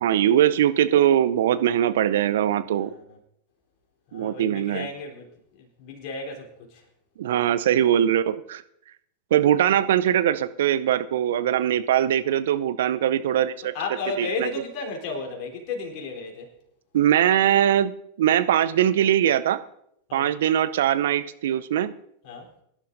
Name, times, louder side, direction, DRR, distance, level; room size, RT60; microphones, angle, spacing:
voice 1, 0.0-2.9 4.1-4.9 7.2-8.6 9.3-13.7 14.2-14.5 16.9-17.9 18.2-19.6 20.1-21.9, right 11 dB, 65° right, 14 dB, 0.6 m, -21 dB
voice 2, 2.7-3.2 4.1-6.8 11.4-11.7 13.6-16.5 20.1-20.3 22.2-22.5, left 3 dB, 50° left, 0 dB, 3.6 m, -34 dB
23.0 x 11.0 x 2.7 m, 0.75 s
figure-of-eight pair, 90°, 0 cm